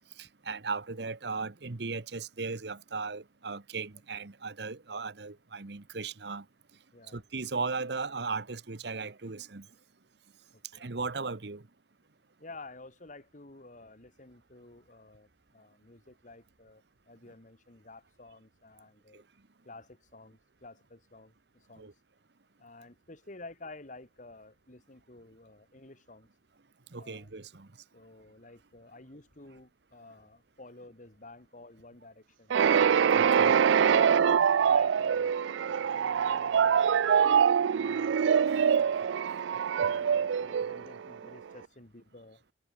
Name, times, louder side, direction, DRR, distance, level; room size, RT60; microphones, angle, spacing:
voice 1, 0.5-6.4 7.1-9.6 10.8-11.6 21.8-21.9 26.9-27.7 33.4-33.5, right 4 dB, 65° right, 1.1 m, -36 dB
voice 2, 6.9-7.2 10.5-10.9 12.4-19.2 19.6-21.9 22.6-26.3 27.0-27.3 27.9-32.6 33.3-34.1 34.6-39.0 39.8-42.4, left 2 dB, 45° left, 2.1 m, -52 dB
sound 1, 32.5-41.3, right 7 dB, 90° right, 0.4 m, -24 dB
head